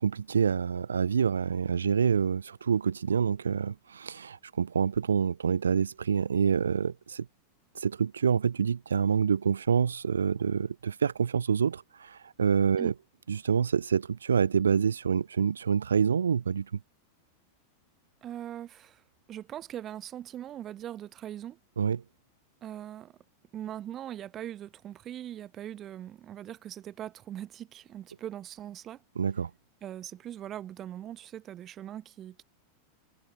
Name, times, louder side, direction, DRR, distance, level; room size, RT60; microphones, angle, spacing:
voice 1, 0.0-7.3 7.7-12.9 13.3-16.7 21.8-22.0 29.2-29.5, right 6 dB, 70° right, 0.7 m, -27 dB
voice 2, 18.2-19.0 19.3-21.6 22.6-23.1 23.5-29.0 29.8-32.4, right 11 dB, 30° right, 4.0 m, -41 dB
figure-of-eight pair, 90°, 0 cm